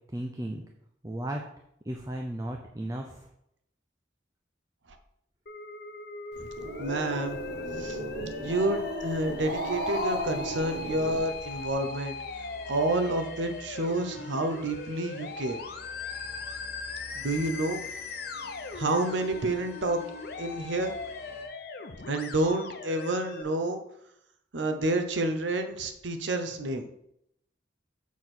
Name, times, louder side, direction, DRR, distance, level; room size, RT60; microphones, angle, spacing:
voice 1, 0.1-0.6 1.0-1.4 1.8-3.3, right 1 dB, 20° right, 2 dB, 0.6 m, -35 dB
Musical instrument, 5.5-23.4, left 3 dB, 55° left, 0.7 m, -39 dB
Growling, 6.3-11.7, equal, 65° right, 1.4 m, -35 dB
voice 2, 6.8-7.4 7.8-8.0 8.4-12.2 12.6-15.6 17.1-17.8 18.7-20.0 20.4-20.9 22.1-23.8 24.5-26.9, right 2 dB, 80° right, 7 dB, 0.8 m, -29 dB
sound 1, 10.1-21.4, equal, 35° left, 1.5 m, -51 dB
7.2 x 4.4 x 6.1 m, 0.77 s
head